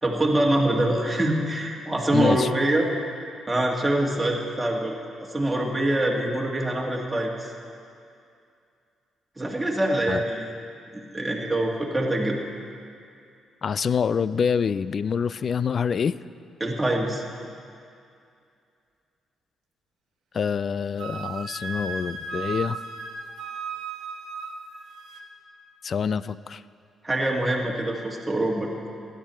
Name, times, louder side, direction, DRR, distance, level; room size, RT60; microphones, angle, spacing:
voice 1, 0.0-2.9 3.5-7.5 9.4-10.5 10.9-12.4 16.6-17.2 27.0-28.7, right 1 dB, 10° right, -2 dB, 1.9 m, -24 dB
voice 2, 2.1-2.5 10.1-10.2 13.6-16.2 20.3-22.8 25.8-26.6, left 6 dB, 50° left, 17 dB, 0.3 m, -26 dB
Wind instrument woodwind instrument, 21.0-25.3, right 4 dB, 75° right, 1.2 m, -35 dB
16.5 x 11.0 x 4.4 m, 2.4 s
cardioid pair, 90°, 0 cm